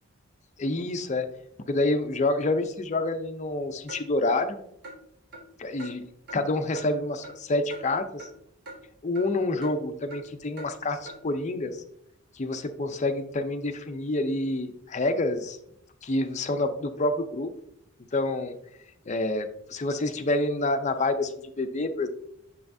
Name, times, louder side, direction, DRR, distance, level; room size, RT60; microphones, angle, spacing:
voice 1, 0.6-1.3 1.7-4.6 5.6-6.0 6.3-8.3 9.0-11.8 12.3-15.6 16.0-17.5 18.1-18.6 19.1-21.3 21.6-22.1, left 2 dB, 35° left, 8 dB, 0.5 m, -27 dB
Clock, 3.9-4.0 4.4-4.5 4.8-5.0 5.3-5.4 5.8-5.9 6.3-6.4 6.7-6.9 7.2-7.4 7.7-7.8 8.2-8.3 8.7-8.8 9.2-9.3 9.6-9.7 10.1-10.2 10.6-10.7 11.1-11.2, right 2 dB, 55° right, 1.6 m, -42 dB
6.7 x 5.6 x 2.6 m, 0.74 s
head